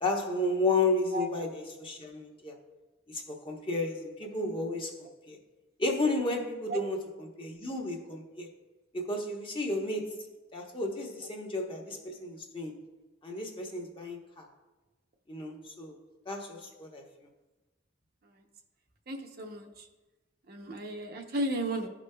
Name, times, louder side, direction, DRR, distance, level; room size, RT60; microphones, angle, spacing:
voice 1, 0.0-2.6 3.1-5.4 5.8-8.5 8.9-10.2 10.5-12.8 13.2-14.5 15.3-16.0 16.3-17.0, left 2 dB, 25° left, 1 dB, 0.9 m, -32 dB
voice 2, 19.1-19.7 20.5-21.9, right 1 dB, 50° right, 4 dB, 0.7 m, -34 dB
15.0 x 5.1 x 2.2 m, 1.1 s
head